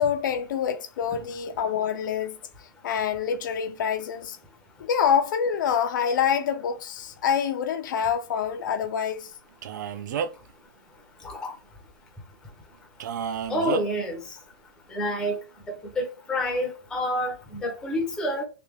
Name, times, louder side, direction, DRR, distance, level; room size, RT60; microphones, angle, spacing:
voice 1, 0.0-2.4 2.8-4.4 4.8-9.3, left 7 dB, 65° left, 0.5 m, -26 dB
Male speech man speaking, 9.6-10.5 13.0-13.8, right 7 dB, 60° right, 0.4 m, -31 dB
voice 2, 13.5-14.2 14.9-15.4 15.7-18.5, equal, 5° left, 0.6 m, -28 dB
3.3 x 2.7 x 3.5 m
supercardioid pair, 175°, 11 cm